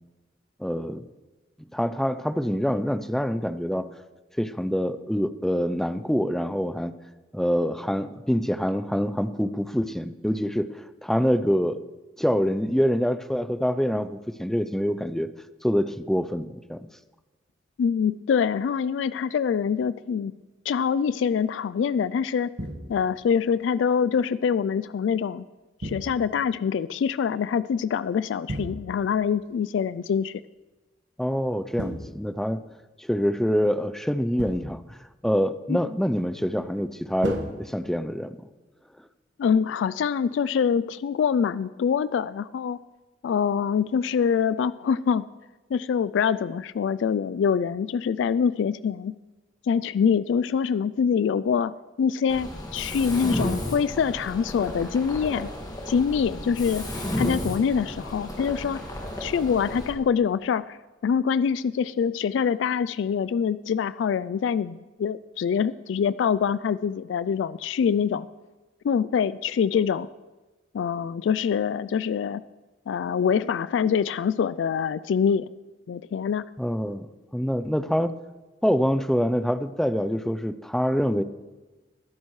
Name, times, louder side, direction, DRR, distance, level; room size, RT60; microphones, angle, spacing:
voice 1, 0.6-1.0 1.7-3.9 4.4-6.9 7.3-10.7 11.0-11.8 12.2-15.3 15.6-16.9 31.2-32.6 33.0-35.0 35.2-38.4 76.6-77.1 77.3-78.1 78.6-81.2, equal, ahead, 12 dB, 0.4 m, -25 dB
voice 2, 17.8-20.3 20.7-22.5 22.9-25.4 25.8-30.4 35.7-35.8 39.4-42.8 43.2-45.3 45.7-49.1 49.6-55.5 55.9-56.9 57.2-58.8 59.2-60.8 61.0-68.3 68.8-70.1 70.7-72.4 72.9-75.5 75.9-76.5, left 7 dB, 80° left, 16 dB, 0.3 m, -25 dB
sound 1, 22.6-23.2 25.8-26.5 28.5-29.2 31.8-32.7 34.4-34.9 37.2-38.3, right 1 dB, 70° right, 1.3 m, -35 dB
Mechanisms, 52.3-59.9, equal, 20° left, 2.0 m, -33 dB
20.5 x 11.0 x 3.2 m, 1.2 s
head